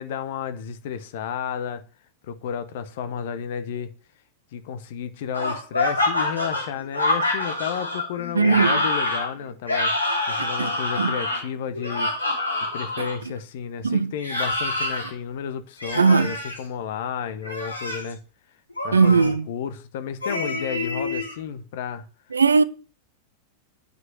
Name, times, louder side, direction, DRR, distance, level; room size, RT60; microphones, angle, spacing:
voice 1, 0.0-1.8 2.3-3.9 4.5-9.9 10.3-12.1 12.7-18.2 18.8-22.0, left 8 dB, 55° left, 1.1 m, -32 dB
sound 1, 5.3-13.2 14.2-15.1 15.8-16.6 17.4-18.1 18.8-19.3 20.2-21.3, left 2 dB, 80° left, 3.1 m, -26 dB
voice 2, 8.3-8.8 10.4-10.7 11.0-11.1 13.8-14.1 16.0-16.3 18.9-19.5 22.3-22.6, right 4 dB, 75° right, 0.6 m, -19 dB
9.6 x 5.4 x 6.7 m
figure-of-eight pair, 90°, 0 cm